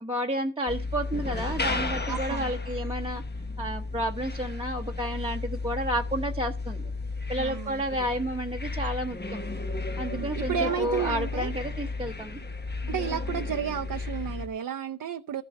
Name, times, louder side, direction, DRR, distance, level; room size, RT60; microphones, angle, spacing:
voice 1, 0.0-3.2 3.6-6.9 7.3-9.4 10.0-12.4, right 1 dB, 15° right, 0.9 m, -31 dB
sound 1, 0.7-14.5, left 3 dB, 30° left, 1.1 m, -33 dB
voice 2, 2.1-2.4 7.4-7.8 10.1-11.5 12.9-15.4, right 9 dB, 85° right, 0.6 m, -32 dB
15.0 x 5.4 x 5.3 m
wide cardioid pair, 95°, 33 cm